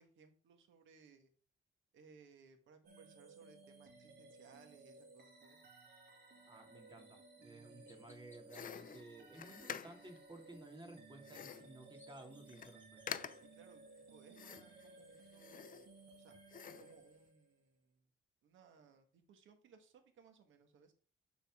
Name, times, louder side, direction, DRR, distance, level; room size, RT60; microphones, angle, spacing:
voice 1, 0.0-1.3 1.9-5.6 13.4-16.3 16.8-18.0 18.4-20.9, right 5 dB, 75° right, 6 dB, 1.6 m, -64 dB
sound 1, 2.8-17.6, right 3 dB, 55° right, 2.4 m, -59 dB
voice 2, 6.5-13.0, right 2 dB, 25° right, 2 dB, 2.4 m, -55 dB
Chirp tweet, 7.0-7.1 7.9-8.6 11.6-13.4, left 1 dB, 10° left, 2.3 m, -68 dB
sound 2, 8.5-10.2 11.2-11.8 12.2-12.3 12.5-12.8 13.1-13.6 14.3-14.9 15.3-16.1 16.5-17.0, left 8 dB, 45° left, 0.5 m, -48 dB
11.5 x 4.2 x 3.7 m, 0.41 s
cardioid pair, 90°, 20 cm